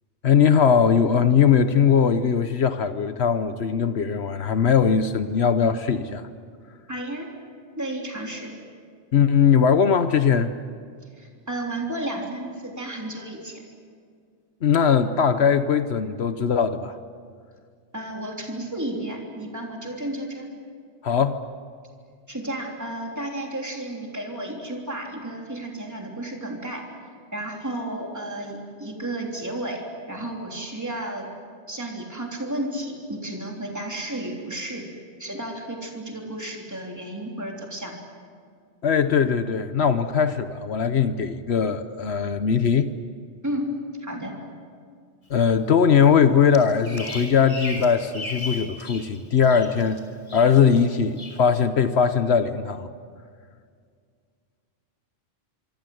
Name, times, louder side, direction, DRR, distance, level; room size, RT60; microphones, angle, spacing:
voice 1, 0.2-6.2 9.1-10.5 14.6-17.0 21.0-21.4 38.8-42.9 45.3-50.0 50.3-52.9, left 7 dB, 70° left, 10 dB, 1.2 m, -20 dB
voice 2, 6.9-7.3 7.8-8.5 11.2-13.6 17.9-20.5 22.3-26.8 27.3-31.3 31.7-34.8 35.2-37.9 43.4-44.4, right 1 dB, 15° right, 0 dB, 3.3 m, -32 dB
Bird vocalization bird call bird song, 46.5-49.1 49.4-50.0 50.3-50.8 51.2-51.4, left 2 dB, 30° left, 3.6 m, -36 dB
25.5 x 25.5 x 7.9 m, 2.1 s
omnidirectional pair, 1.1 m